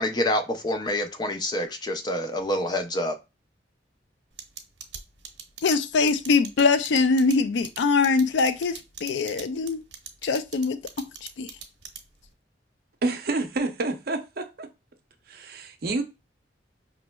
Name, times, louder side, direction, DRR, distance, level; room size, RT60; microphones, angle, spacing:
voice 1, 0.0-3.2, left 1 dB, 25° left, 0.5 m, -27 dB
sound 1, 4.4-12.3, right 8 dB, 85° right, 0.8 m, -40 dB
voice 2, 5.6-9.8 10.2-11.1 11.4-11.5, left 4 dB, 75° left, 0.4 m, -23 dB
voice 3, 13.0-14.7 15.3-16.0, right 2 dB, 55° right, 0.6 m, -28 dB
5.1 x 3.0 x 2.2 m
head